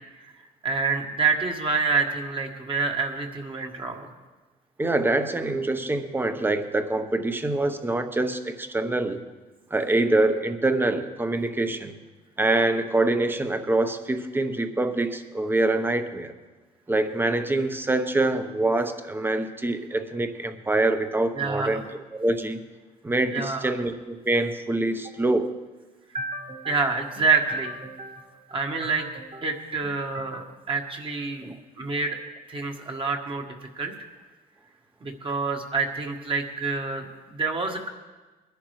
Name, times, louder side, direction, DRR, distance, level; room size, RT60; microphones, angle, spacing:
voice 1, 0.6-4.1 21.3-21.8 23.3-23.7 26.1-31.5 31.8-32.2 32.5-33.4 33.7-33.9 35.0-37.9, right 4 dB, 30° right, 3 dB, 1.6 m, -27 dB
voice 2, 4.8-9.2 9.7-11.9 12.4-16.3 16.9-21.8 22.1-22.6 23.0-25.5 31.4-31.6, right 2 dB, 10° right, 9 dB, 0.9 m, -25 dB
21.5 x 11.0 x 3.2 m, 1.2 s
cardioid pair, 110°, 17 cm